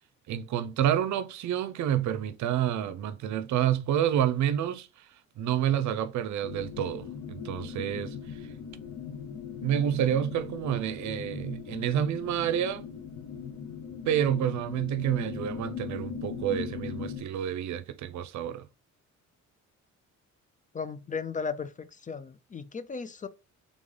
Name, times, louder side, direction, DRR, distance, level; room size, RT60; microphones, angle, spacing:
voice 1, 0.3-5.1 5.4-8.4 9.6-12.9 14.1-18.7, right 10 dB, 70° right, 0.6 m, -29 dB
sound 1, 6.4-17.2, left 7 dB, 65° left, 1.0 m, -39 dB
voice 2, 20.7-23.3, left 5 dB, 25° left, 0.4 m, -36 dB
3.8 x 3.6 x 3.6 m
cardioid pair, 90°, 30 cm